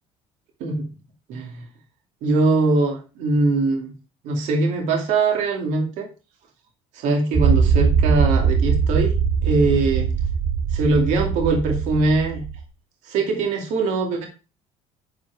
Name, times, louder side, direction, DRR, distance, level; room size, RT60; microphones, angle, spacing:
voice 1, 1.3-1.6 2.2-3.9 4.2-6.1 6.9-9.1 9.4-10.1 10.7-12.4 13.1-14.3, right 3 dB, 75° right, 2 dB, 2.5 m, -22 dB
sound 1, 7.3-12.6, right 6 dB, 10° right, 3.3 m, -21 dB
10.0 x 4.8 x 4.7 m, 0.31 s
cardioid pair, 140°, 13 cm